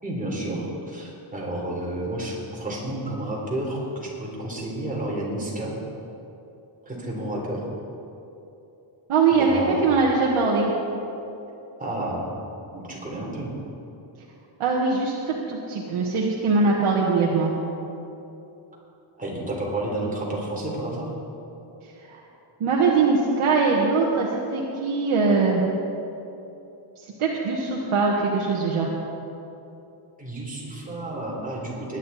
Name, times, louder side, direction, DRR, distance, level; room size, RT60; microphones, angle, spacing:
voice 1, 0.0-5.8 6.9-7.7 9.3-9.9 11.8-12.3 12.7-13.5 19.2-21.1 30.2-32.0, right 1 dB, 15° right, -4 dB, 3.6 m, -31 dB
voice 2, 9.1-10.7 14.6-17.5 22.1-22.2 22.6-25.6 27.2-28.9, right 4 dB, 75° right, -4 dB, 1.7 m, -22 dB
20.5 x 10.5 x 4.2 m, 2.9 s
wide cardioid pair, 135°, 50 cm